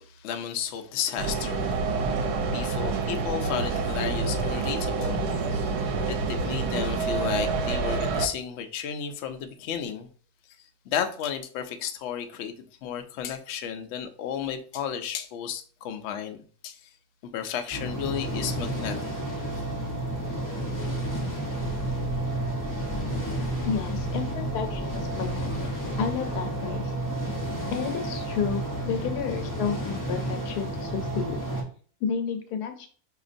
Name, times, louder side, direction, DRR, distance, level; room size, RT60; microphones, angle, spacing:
voice 1, 0.0-2.2 2.5-5.2 5.7-5.8 6.1-10.1 10.9-12.5 12.8-16.9 17.2-19.1, left 8 dB, 65° left, 0.7 m, -33 dB
sound 1, 1.2-8.3, right 4 dB, 80° right, 1.2 m, -27 dB
sound 2, 17.7-31.6, right 1 dB, 20° left, 0.6 m, -31 dB
voice 2, 23.6-25.7 26.0-26.8 27.7-31.4 32.0-32.9, left 7 dB, 90° left, 1.2 m, -31 dB
4.9 x 2.9 x 2.5 m
omnidirectional pair, 1.6 m